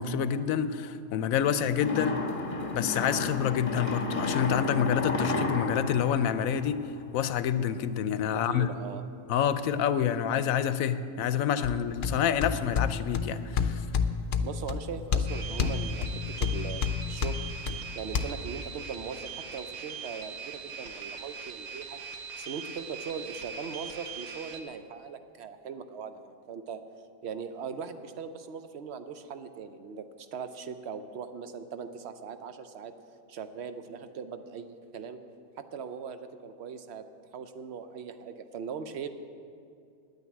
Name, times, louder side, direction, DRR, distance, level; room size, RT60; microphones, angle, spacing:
voice 1, 0.0-2.2 2.7-6.8 7.1-8.7 9.3-13.8, left 8 dB, 75° left, 12 dB, 1.0 m, -27 dB
sound 1, 1.8-7.1, left 3 dB, 25° left, 1.1 m, -32 dB
voice 2, 8.5-9.0 14.4-17.4 17.9-22.0 22.4-26.8 27.2-32.9 33.3-35.2 35.6-37.0 37.3-39.1, right 6 dB, 55° right, 9 dB, 0.9 m, -40 dB
sound 2, 11.6-18.2, left 6 dB, 55° left, 0.6 m, -30 dB
sound 3, 15.3-24.6, right 5 dB, 80° right, 1.3 m, -41 dB
9.8 x 9.3 x 8.4 m, 2.4 s
omnidirectional pair, 1.5 m